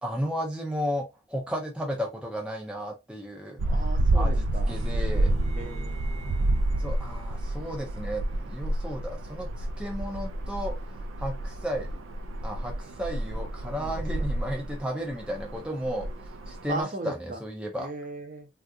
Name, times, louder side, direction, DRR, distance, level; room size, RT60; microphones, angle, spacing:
voice 1, 0.0-3.6 4.1-5.3 6.8-12.0 12.4-16.1 16.5-17.9, equal, 5° right, 0.4 m, -34 dB
sound 1, 3.6-16.8, right 1 dB, 85° right, 0.4 m, -29 dB
voice 2, 3.7-4.8 5.5-6.0 13.8-14.2 16.7-17.4 17.8-18.5, right 2 dB, 40° right, 0.6 m, -37 dB
sound 2, 4.7-8.7, right 1 dB, 70° right, 1.0 m, -46 dB
3.5 x 2.3 x 2.5 m
head